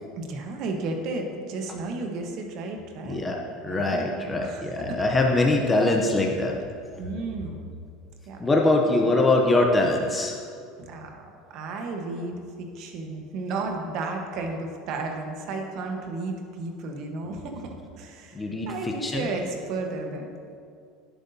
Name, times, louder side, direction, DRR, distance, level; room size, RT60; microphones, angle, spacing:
voice 1, 0.2-3.3 3.6-5.1 7.0-7.7 8.3-8.4 10.8-20.3, right 3 dB, 55° right, 3 dB, 1.1 m, -33 dB
voice 2, 3.1-6.5 8.4-10.4 18.3-18.7 19.0-19.3, left 2 dB, 15° left, 0 dB, 0.6 m, -23 dB
10.5 x 8.1 x 2.7 m, 2.3 s
supercardioid pair, 140°, 0 cm